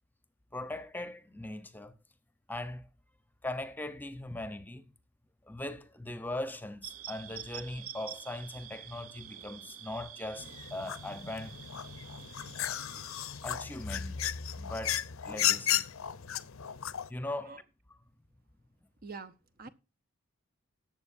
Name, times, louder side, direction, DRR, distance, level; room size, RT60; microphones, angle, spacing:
voice 1, 0.5-1.9 2.5-2.9 3.4-4.8 5.5-11.6 13.4-14.2 14.6-15.9 17.1-17.6, left 1 dB, 10° left, 0.8 m, -40 dB
sound 1, 6.8-13.7, right 10 dB, 85° right, 1.0 m, -48 dB
sound 2, 10.4-17.1, left 11 dB, 75° left, 0.7 m, -34 dB
voice 2, 19.0-19.7, right 4 dB, 45° right, 0.9 m, -45 dB
18.5 x 7.7 x 2.6 m
head